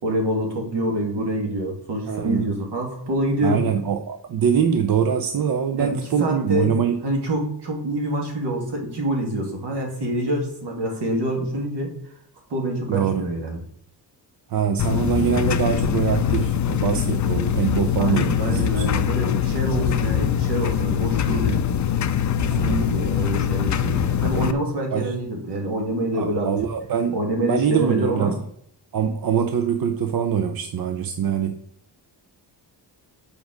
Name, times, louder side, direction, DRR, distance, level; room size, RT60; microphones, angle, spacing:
voice 1, 0.0-3.7 5.7-6.7 7.0-11.9 12.5-13.6 18.0-21.7 22.4-26.5 27.1-28.4, right 1 dB, 70° right, 1 dB, 2.4 m, -26 dB
voice 2, 2.1-2.5 3.4-7.0 12.9-13.2 14.5-18.8 22.5-22.9 24.9-25.1 26.1-28.3 28.9-31.6, right 7 dB, 55° right, 7 dB, 0.7 m, -23 dB
sound 1, 14.8-24.5, left 9 dB, 45° left, 0.5 m, -23 dB
7.3 x 5.0 x 6.4 m, 0.68 s
wide cardioid pair, 150°, 42 cm